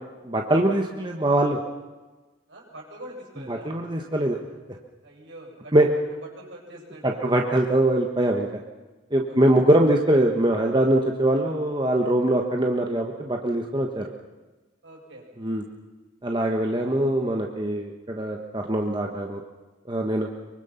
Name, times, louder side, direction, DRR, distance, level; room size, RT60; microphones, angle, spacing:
voice 1, 0.2-1.6 3.5-4.4 5.7-5.9 7.0-8.6 9.1-14.1 15.4-15.6 16.2-19.4 19.8-20.3, right 1 dB, 25° right, 1 dB, 1.4 m, -22 dB
voice 2, 2.5-3.8 5.0-5.7 6.4-7.4 9.3-9.6 14.8-15.3, right 1 dB, 65° right, -1 dB, 7.6 m, -44 dB
24.5 x 24.0 x 5.8 m, 1.2 s
head